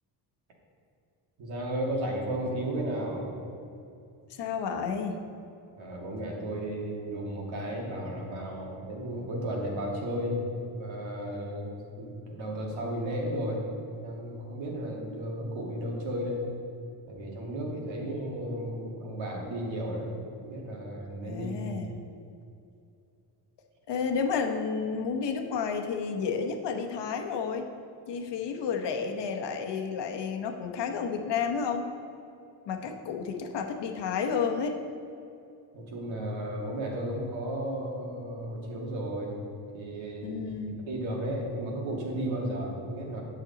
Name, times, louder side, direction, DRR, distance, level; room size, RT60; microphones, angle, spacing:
voice 1, 1.4-3.3 5.8-10.4 10.7-13.6 13.9-16.5 17.1-20.1 20.4-21.8 35.7-39.4 39.7-40.4 40.9-43.2, right 1 dB, 80° right, -2 dB, 2.0 m, -34 dB
voice 2, 4.4-5.2 21.2-21.9 23.9-27.7 28.1-31.8 32.7-34.8 40.2-40.8, left 6 dB, 65° left, 3 dB, 1.0 m, -31 dB
8.5 x 6.4 x 4.0 m, 2.6 s
cardioid pair, 85°, 46 cm